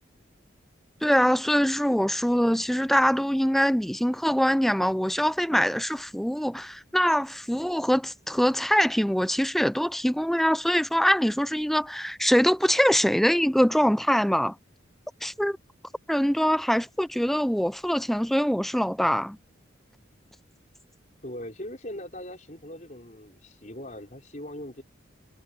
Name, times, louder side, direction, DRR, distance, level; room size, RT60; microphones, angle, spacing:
voice 1, 1.0-14.5 15.2-15.6 16.1-19.4, equal, ahead, 0.6 m, -23 dB
voice 2, 21.2-24.8, left 1 dB, 40° left, 5.3 m, -40 dB
head